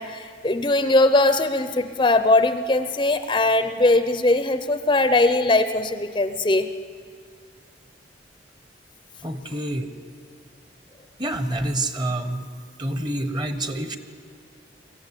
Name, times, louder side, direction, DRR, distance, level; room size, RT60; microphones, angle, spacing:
voice 1, 0.0-6.7, left 2 dB, 25° left, 11 dB, 0.6 m, -20 dB
voice 2, 9.2-9.9 11.2-12.4 12.8-14.0, right 1 dB, 25° right, 10 dB, 1.1 m, -27 dB
23.0 x 14.5 x 9.9 m, 2.1 s
head